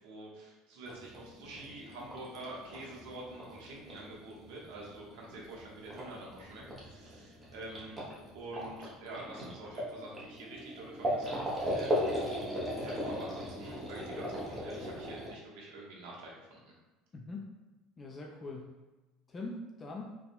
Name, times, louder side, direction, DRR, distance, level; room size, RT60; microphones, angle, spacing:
voice 1, 0.0-8.0 8.3-12.3 12.8-16.7, right 2 dB, 90° right, -3 dB, 1.2 m, -47 dB
sound 1, 0.9-15.3, equal, 15° right, 0.9 m, -38 dB
voice 2, 17.1-17.5 18.0-18.8 19.3-20.2, left 2 dB, 20° left, 0 dB, 0.3 m, -42 dB
4.8 x 3.4 x 2.2 m, 1.1 s
cardioid pair, 165°, 0 cm